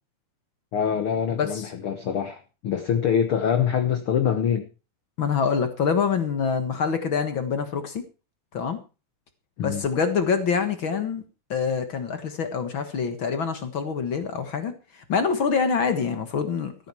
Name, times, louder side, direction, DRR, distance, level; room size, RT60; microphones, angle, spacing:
voice 1, 0.7-4.7 9.6-9.8, left 8 dB, 75° left, 1.2 m, -24 dB
voice 2, 1.3-1.7 5.2-8.0 8.5-8.8 9.6-11.2 11.5-16.9, left 6 dB, 50° left, 1.5 m, -25 dB
14.0 x 11.5 x 4.7 m
omnidirectional pair, 4.3 m